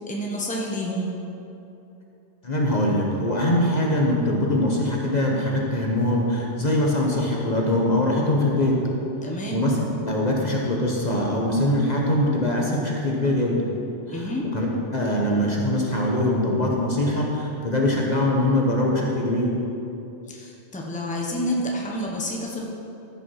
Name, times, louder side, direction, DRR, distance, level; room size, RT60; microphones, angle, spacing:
voice 1, 0.1-1.1 9.2-9.7 14.1-14.5 20.3-22.6, equal, 5° left, -2 dB, 1.1 m, -29 dB
voice 2, 2.4-8.7 9.5-9.8 10.1-13.6 14.1-14.7 14.9-19.5, left 1 dB, 40° left, -2 dB, 1.3 m, -22 dB
14.0 x 5.9 x 5.8 m, 2.9 s
omnidirectional pair, 1.2 m